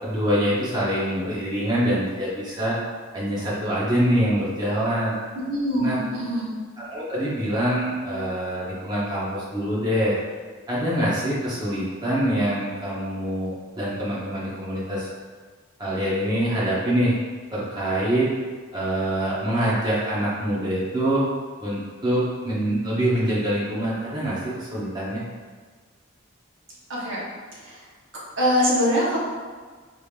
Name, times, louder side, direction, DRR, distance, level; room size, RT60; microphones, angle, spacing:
voice 1, 0.0-2.8 3.1-5.1 5.8-6.0 6.8-10.2 10.7-15.1 15.8-17.1 17.5-18.3 18.7-21.2 21.6-25.2, equal, 20° right, -8 dB, 1.0 m, -25 dB
voice 2, 5.5-6.5 26.9-27.2 27.6-27.8 28.4-29.2, equal, 70° right, -6 dB, 1.1 m, -23 dB
3.8 x 3.4 x 2.4 m, 1.5 s
head